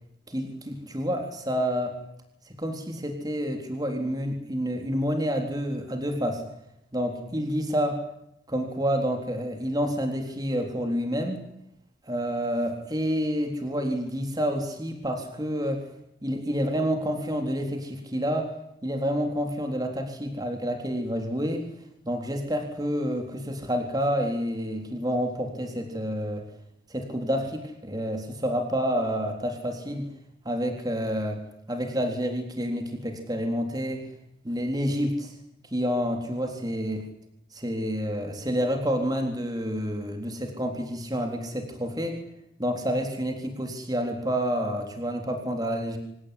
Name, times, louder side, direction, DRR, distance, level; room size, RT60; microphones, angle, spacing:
voice 1, 0.3-2.0 2.5-6.4 6.9-8.0 8.5-11.4 12.1-15.8 16.2-18.5 18.8-21.6 22.1-26.4 26.9-30.1 30.5-31.4 31.7-34.0 34.4-35.3 35.7-37.0 37.5-42.2 42.6-46.0, equal, 25° right, 3 dB, 3.8 m, -28 dB
26.0 x 18.5 x 9.9 m, 0.78 s
head